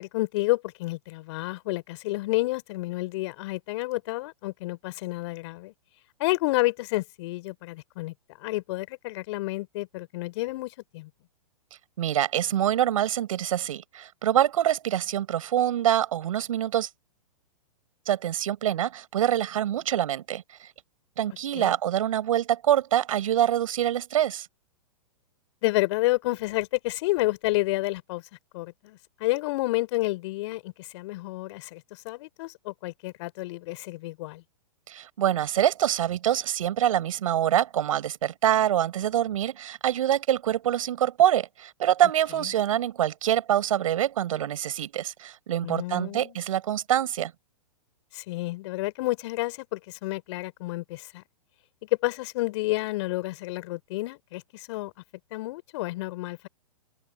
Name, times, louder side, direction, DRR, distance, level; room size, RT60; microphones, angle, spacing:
voice 1, 0.0-5.7 6.2-8.1 8.4-11.1 21.5-21.8 25.6-28.2 28.5-34.4 42.4-42.5 45.6-46.4 48.1-51.2 51.9-54.9 55.3-56.5, left 20 dB, 50° left, 3.7 m, -30 dB
voice 2, 12.0-16.9 18.1-20.4 21.2-24.5 34.9-47.3, right 11 dB, 60° right, 7.0 m, -25 dB
open air
figure-of-eight pair, 115°, 19 cm